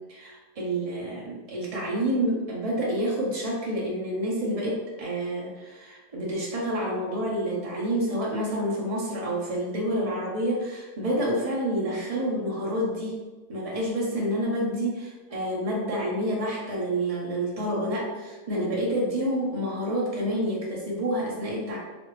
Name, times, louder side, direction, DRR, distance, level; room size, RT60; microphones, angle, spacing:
voice 1, 0.0-13.2 13.5-21.8, equal, 45° right, -4 dB, 0.4 m, -28 dB
3.2 x 2.5 x 3.1 m, 1.2 s
omnidirectional pair, 1.8 m